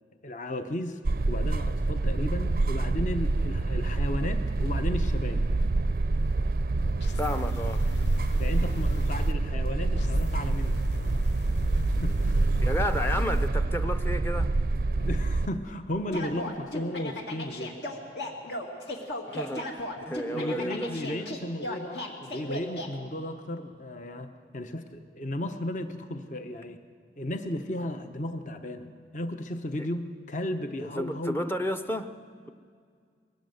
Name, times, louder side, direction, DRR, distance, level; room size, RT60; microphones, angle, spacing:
voice 1, 0.2-1.0 1.3-5.4 8.4-10.8 11.8-12.4 15.0-17.8 20.3-26.8 27.2-28.9 29.1-31.5, left 1 dB, 45° left, 8 dB, 0.9 m, -34 dB
sound 1, 1.0-15.5, right 2 dB, 55° right, 0.5 m, -27 dB
sound 2, 7.0-9.3 10.0-13.5, left 1 dB, 90° left, 0.8 m, -36 dB
voice 2, 7.2-7.8 12.6-14.5 19.3-21.2 30.8-32.1, equal, 15° left, 7 dB, 0.6 m, -32 dB
sound 3, 16.1-22.9, left 1 dB, 70° left, 2.2 m, -36 dB
21.5 x 17.0 x 7.9 m, 2.1 s
head